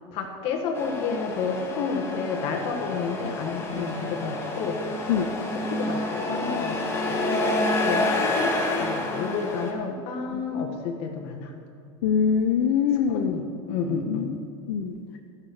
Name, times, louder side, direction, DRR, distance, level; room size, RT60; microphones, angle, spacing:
voice 1, 0.1-5.1 5.5-6.0 6.3-11.5 13.1-14.3, left 5 dB, 40° left, 2 dB, 1.7 m, -30 dB
Truck, 0.7-9.7, left 2 dB, 15° left, 1.5 m, -28 dB
voice 2, 12.0-13.3 14.1-14.2 14.7-14.9, left 7 dB, 60° left, 5 dB, 0.7 m, -23 dB
13.5 x 6.6 x 6.3 m, 2.4 s
supercardioid pair, 165°, 14 cm